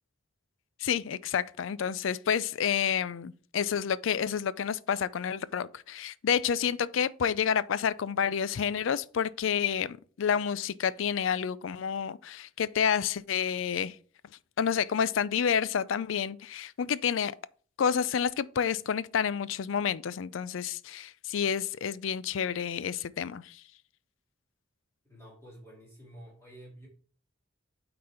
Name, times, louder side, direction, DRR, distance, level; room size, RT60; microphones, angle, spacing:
voice 1, 0.8-14.0 14.6-17.3 17.8-23.6, left 7 dB, 75° left, 0.4 m, -29 dB
voice 2, 25.0-26.9, equal, 15° left, 2.6 m, -50 dB
8.5 x 4.0 x 4.3 m
head